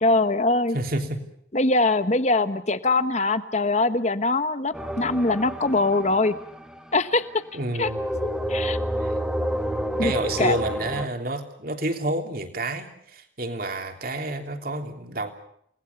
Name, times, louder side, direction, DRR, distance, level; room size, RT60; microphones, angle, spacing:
voice 1, 0.0-0.8 1.5-6.4 6.9-7.2 7.8-7.9 8.2-8.8 10.0-10.1 10.4-10.6, left 2 dB, 35° left, 11 dB, 1.2 m, -22 dB
voice 2, 0.7-1.2 7.5-8.0 9.0-9.1 10.0-15.3, right 1 dB, 50° right, 5 dB, 3.2 m, -29 dB
sound 1, 4.7-7.2 7.8-11.1, equal, 5° right, 1.7 m, -29 dB
29.5 x 19.5 x 7.0 m, 0.70 s
head